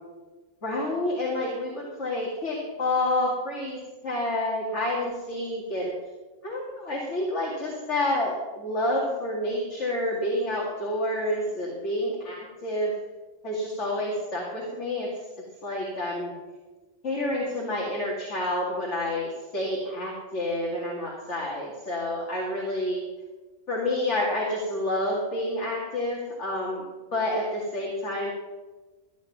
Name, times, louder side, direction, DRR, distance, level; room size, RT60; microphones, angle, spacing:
voice 1, 0.6-5.9 6.4-12.3 12.6-13.0 13.4-15.1 15.6-16.3 17.0-23.0 23.7-26.8 27.1-28.3, left 1 dB, 65° left, -4 dB, 2.7 m, -29 dB
14.5 x 9.2 x 6.0 m, 1.3 s
omnidirectional pair, 1.3 m